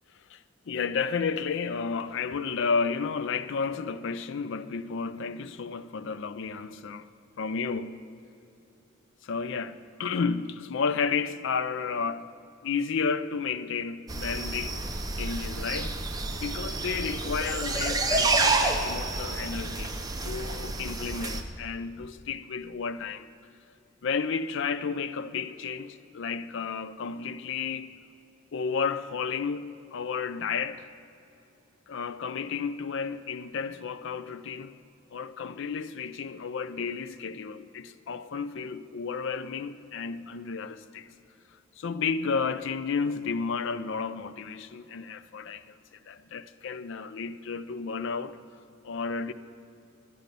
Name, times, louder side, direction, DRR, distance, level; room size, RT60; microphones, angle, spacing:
voice 1, 0.3-7.1 7.4-8.0 9.2-12.3 12.6-14.9 15.2-16.0 16.4-19.9 20.2-23.3 24.0-27.9 28.5-30.9 31.9-34.8 35.1-41.1 41.8-45.8 46.1-48.4 48.8-49.3, left 5 dB, 65° left, 0.4 m, -32 dB
sound 1, 14.1-21.4, right 3 dB, 20° right, 0.7 m, -29 dB
11.0 x 10.5 x 5.2 m
head